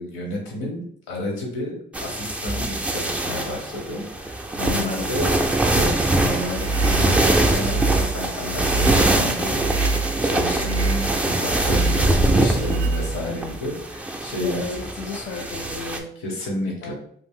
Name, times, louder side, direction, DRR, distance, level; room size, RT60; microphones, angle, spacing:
voice 1, 0.0-14.6 15.3-15.4 16.2-16.9, left 1 dB, 85° left, 0 dB, 1.0 m, -31 dB
sound 1, 1.9-16.0, right 1 dB, 5° right, 0.3 m, -23 dB
voice 2, 4.7-5.4 14.4-16.1 16.8-16.9, left 4 dB, 65° left, 2 dB, 0.6 m, -33 dB
sound 2, 6.4-13.6, right 3 dB, 85° right, 0.4 m, -26 dB
2.5 x 2.0 x 3.7 m, 0.64 s
cardioid pair, 90°, 20 cm